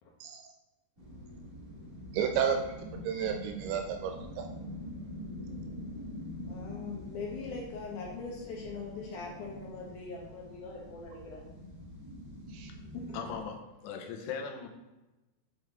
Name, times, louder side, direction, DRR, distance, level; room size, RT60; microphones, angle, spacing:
sound 1, 1.0-13.4, left 1 dB, 40° right, 1.0 m, -45 dB
voice 1, 2.1-4.4 12.5-12.7, right 7 dB, 80° right, 4 dB, 2.4 m, -32 dB
voice 2, 6.4-11.4 12.9-13.3, left 4 dB, 70° left, -3 dB, 2.0 m, -41 dB
voice 3, 13.1-14.7, left 6 dB, 85° left, 3 dB, 3.0 m, -39 dB
8.1 x 4.6 x 3.5 m, 1.1 s
omnidirectional pair, 4.9 m